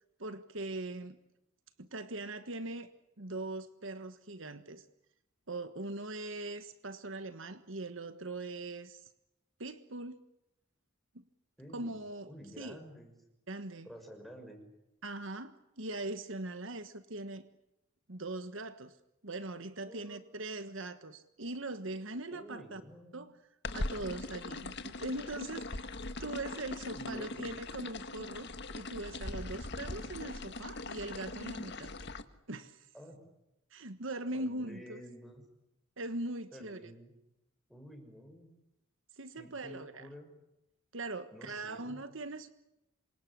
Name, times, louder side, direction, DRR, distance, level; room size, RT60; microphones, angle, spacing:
voice 1, 0.2-1.2 1.8-2.9 3.2-4.8 5.5-9.1 9.6-10.2 11.1-11.2 11.7-12.3 12.6-12.8 13.5-13.9 15.0-17.4 18.1-18.9 19.2-22.8 23.1-23.3 23.7-31.9 32.5-32.9 33.7-35.0 36.0-36.9 39.2-40.1 40.9-42.5, right 2 dB, 65° right, 10 dB, 1.4 m, -41 dB
voice 2, 11.6-12.0 12.3-13.1 13.8-14.6 19.8-20.2 22.3-23.2 26.9-27.4 32.9-33.2 34.3-35.4 36.5-37.1 37.7-38.5 39.4-40.3 41.3-42.0, equal, ahead, 3 dB, 6.5 m, -50 dB
sound 1, 23.6-32.2, left 2 dB, 55° left, 1.7 m, -41 dB
27.5 x 24.5 x 8.5 m, 0.89 s
head